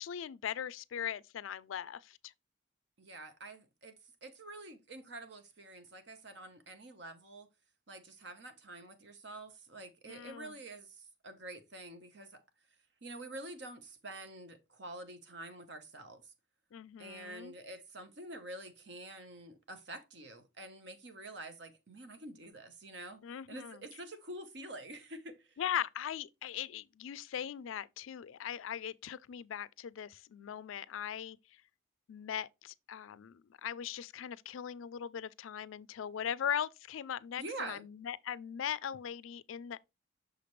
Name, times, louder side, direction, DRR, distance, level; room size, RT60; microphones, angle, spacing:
voice 1, 0.0-2.3 10.1-10.5 16.7-17.5 23.2-23.8 25.6-31.4 32.1-39.8, left 9 dB, 85° left, 0.4 m, -39 dB
voice 2, 3.0-7.5 7.9-12.4 13.0-16.3 17.0-23.2 23.5-25.6 37.4-37.9, right 2 dB, 60° right, 1.0 m, -47 dB
6.4 x 5.0 x 3.1 m
head